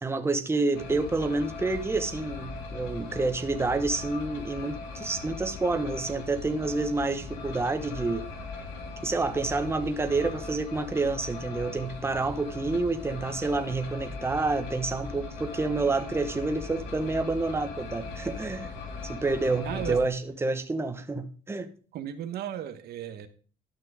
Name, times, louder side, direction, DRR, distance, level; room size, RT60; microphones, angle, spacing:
voice 1, 0.0-8.2 9.0-18.7 19.0-21.7, right 3 dB, 15° right, 7 dB, 1.2 m, -28 dB
sound 1, 0.7-20.0, left 4 dB, 90° left, 2.2 m, -39 dB
voice 2, 19.5-20.1 21.9-23.3, right 10 dB, 70° right, 9 dB, 1.2 m, -35 dB
12.0 x 5.9 x 4.9 m, 0.39 s
cardioid pair, 110°, 17 cm